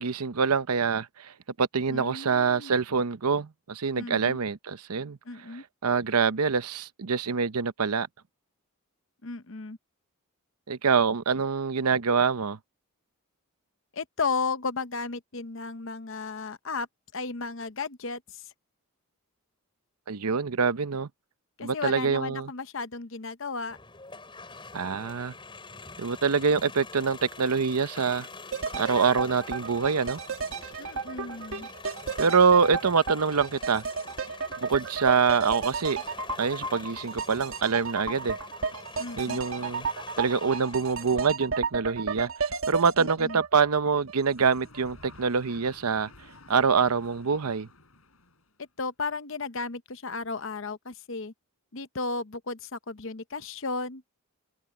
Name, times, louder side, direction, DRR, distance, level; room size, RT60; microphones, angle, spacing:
voice 1, 0.0-1.3 1.6-5.2 5.8-8.1 10.7-12.6 20.1-21.1 21.6-22.5 24.7-25.3 26.0-28.3 28.7-30.2 32.2-33.8 34.6-36.0 36.4-38.4 39.2-39.9 40.2-42.3 42.7-46.1 46.5-47.7, right 5 dB, 85° right, 0.8 m, -25 dB
voice 2, 1.9-2.7 4.0-4.4 5.3-5.6 9.2-9.8 13.9-16.9 17.1-18.4 21.6-23.8 30.8-31.7 39.0-39.4 43.0-43.4 48.8-51.3 51.7-54.0, left 4 dB, 60° left, 0.9 m, -34 dB
sound 1, 23.7-41.3, left 3 dB, 20° left, 6.7 m, -45 dB
sound 2, 28.5-44.5 44.7-44.8, right 5 dB, 65° right, 1.3 m, -33 dB
sound 3, 44.4-48.6, left 2 dB, 75° left, 6.2 m, -52 dB
open air
head